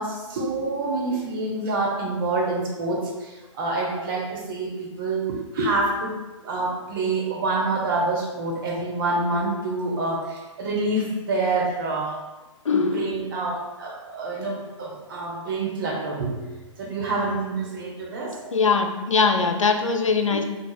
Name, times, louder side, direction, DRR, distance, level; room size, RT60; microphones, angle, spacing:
voice 1, 0.0-12.2 12.7-16.5 16.8-18.4, right 2 dB, 45° right, -2 dB, 1.0 m, -27 dB
voice 2, 12.7-13.1 18.5-20.4, left 4 dB, 80° left, 5 dB, 0.4 m, -21 dB
3.9 x 3.3 x 2.3 m, 1.1 s
figure-of-eight pair, 120°, 16 cm